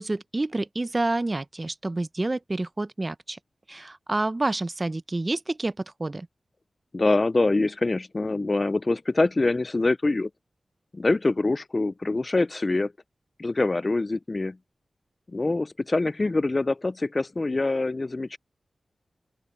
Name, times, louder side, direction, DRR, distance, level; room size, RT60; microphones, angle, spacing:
voice 1, 0.0-3.4 3.7-5.7 6.0-6.3, right 2 dB, 30° right, 0.6 m, -28 dB
voice 2, 6.9-10.3 10.9-12.9 13.4-14.6 15.3-18.4, left 2 dB, 40° left, 0.3 m, -24 dB
open air
wide cardioid pair, 65°, 0 cm